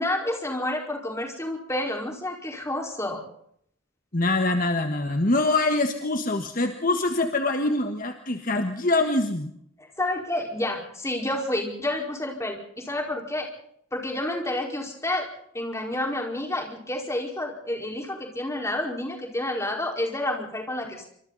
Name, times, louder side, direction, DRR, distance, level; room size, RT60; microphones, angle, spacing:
voice 1, 0.0-3.2 9.8-13.5 13.9-15.3 15.5-21.1, left 1 dB, 15° left, 2 dB, 4.8 m, -29 dB
voice 2, 4.1-9.5, left 2 dB, 40° left, 6 dB, 1.6 m, -24 dB
27.5 x 25.5 x 4.1 m, 0.68 s
head